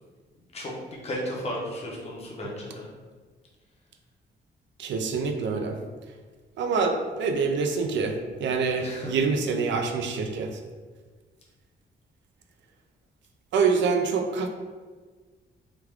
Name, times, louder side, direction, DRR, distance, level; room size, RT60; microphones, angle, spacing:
voice 1, 1.0-2.9 8.8-9.1, equal, 35° left, -3 dB, 0.6 m, -34 dB
voice 2, 4.8-5.8 6.6-10.5 13.5-14.5, right 5 dB, 80° right, 4 dB, 0.4 m, -26 dB
3.1 x 2.3 x 3.3 m, 1.4 s
wide cardioid pair, 175°, 19 cm